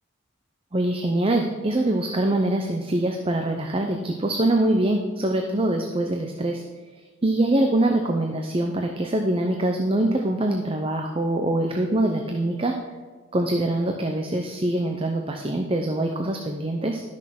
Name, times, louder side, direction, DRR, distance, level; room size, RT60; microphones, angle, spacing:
voice 1, 0.7-6.6 7.2-12.8 13.3-17.0, right 1 dB, 25° right, 3 dB, 0.7 m, -24 dB
12.0 x 6.2 x 5.9 m, 1.4 s
head